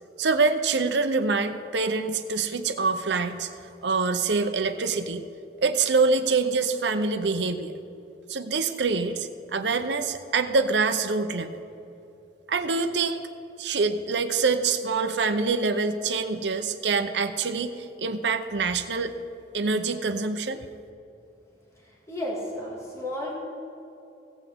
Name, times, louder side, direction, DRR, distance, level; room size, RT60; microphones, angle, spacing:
voice 1, 0.2-3.5 3.8-5.2 5.6-7.7 8.3-11.6 12.5-13.2 13.6-19.1 19.5-20.6, right 4 dB, 70° right, 8 dB, 0.8 m, -25 dB
voice 2, 21.8-23.3, left 1 dB, 15° left, -4 dB, 2.0 m, -33 dB
17.0 x 8.0 x 3.6 m, 2.8 s
head